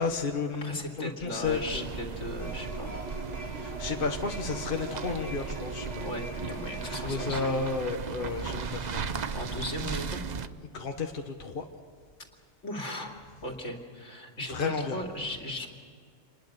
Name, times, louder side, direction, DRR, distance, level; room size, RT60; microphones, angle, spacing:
voice 1, 0.0-1.9 3.5-6.1 6.9-9.3 10.7-11.6 14.5-15.0, left 4 dB, 45° left, 3 dB, 1.4 m, -32 dB
voice 2, 0.6-2.9 6.0-7.5 8.3-8.4 9.3-10.2 12.6-15.7, left 1 dB, 75° left, 2 dB, 2.8 m, -37 dB
sound 1, 1.4-10.5, right 6 dB, 40° right, 0.7 m, -37 dB
sound 2, 2.4-7.7, right 1 dB, 70° right, 4.5 m, -41 dB
27.0 x 21.0 x 6.6 m, 2.1 s
omnidirectional pair, 1.3 m